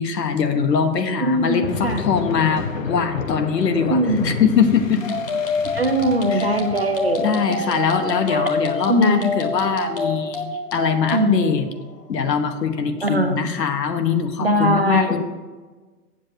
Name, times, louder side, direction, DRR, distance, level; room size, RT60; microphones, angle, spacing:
voice 1, 0.0-5.0 6.3-6.5 7.2-11.7 12.1-15.2, left 6 dB, 80° left, 7 dB, 1.2 m, -22 dB
voice 2, 1.2-2.0 3.9-4.4 5.7-7.8 8.3-8.5 8.9-9.3 11.1-11.4 13.0-13.5 14.4-15.2, right 1 dB, 40° right, 6 dB, 0.5 m, -21 dB
sound 1, 1.4-12.0, left 4 dB, 55° left, 0.9 m, -33 dB
sound 2, 5.0-11.3, left 3 dB, 35° left, 1.1 m, -26 dB
7.9 x 7.5 x 4.7 m, 1.3 s
hypercardioid pair, 180°, 49 cm